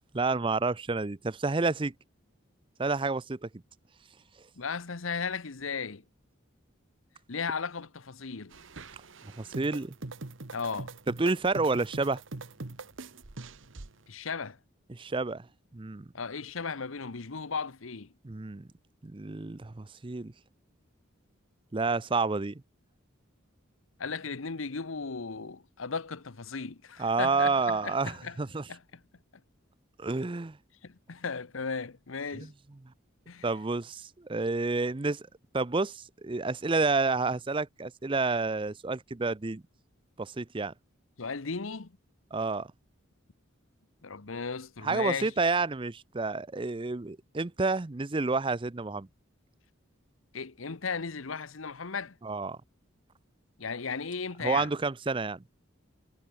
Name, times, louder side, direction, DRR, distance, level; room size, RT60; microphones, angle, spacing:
voice 1, 0.1-1.9 2.8-3.5 9.4-9.9 11.2-12.2 14.9-15.5 15.7-16.1 18.2-18.7 19.0-20.3 21.7-22.6 27.0-28.6 30.0-30.6 32.3-32.5 33.4-35.2 35.5-39.6 40.2-40.7 42.3-42.7 44.8-49.1 52.2-52.6 54.4-55.4, right 3 dB, 25° right, 0.5 m, -29 dB
voice 2, 4.6-6.0 7.3-8.6 10.5-10.9 14.1-14.6 16.1-18.1 24.0-28.4 28.7-29.0 30.8-32.5 33.3-33.4 41.2-41.9 44.0-45.3 50.3-52.2 53.6-54.7, left 5 dB, 80° left, 1.0 m, -36 dB
sound 1, 8.5-13.9, right 2 dB, 70° right, 1.3 m, -43 dB
head